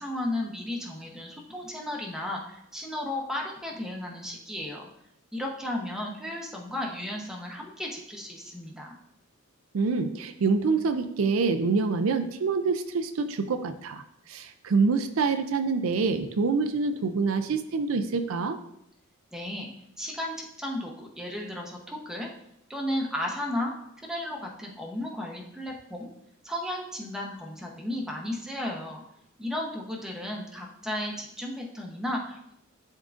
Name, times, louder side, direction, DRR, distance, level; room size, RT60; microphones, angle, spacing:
voice 1, 0.0-4.9 5.3-8.9 19.3-19.7 20.0-22.3 22.7-23.7 24.0-26.1 26.4-29.0 29.4-32.5, left 1 dB, 5° right, -1 dB, 0.9 m, -34 dB
voice 2, 9.7-14.0 14.3-18.6, right 4 dB, 70° right, 8 dB, 0.4 m, -26 dB
11.0 x 3.7 x 2.5 m, 0.78 s
head